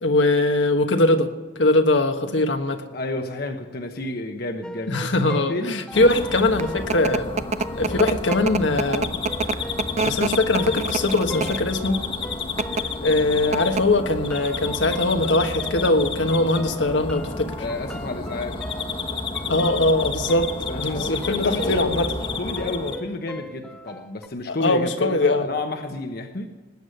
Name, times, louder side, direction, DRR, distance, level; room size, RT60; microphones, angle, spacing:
voice 1, 0.0-1.3 1.6-2.8 4.9-7.3 7.8-9.1 10.0-12.0 13.0-17.5 19.5-20.5 20.8-22.1 24.5-25.5, left 2 dB, 80° left, 5 dB, 1.3 m, -21 dB
voice 2, 2.9-6.1 7.7-8.2 17.6-18.6 20.7-21.8 22.0-22.1 22.4-26.6, left 2 dB, 55° left, 5 dB, 1.1 m, -31 dB
sound 1, 4.6-13.3 13.6-24.3, left 1 dB, 5° left, 0.7 m, -40 dB
sound 2, 5.9-23.0, left 3 dB, 30° left, 1.3 m, -31 dB
sound 3, 6.3-11.7 12.4-12.8 13.2-13.3 13.5-14.0, right 4 dB, 40° right, 0.5 m, -26 dB
19.0 x 9.6 x 6.6 m, 1.3 s
head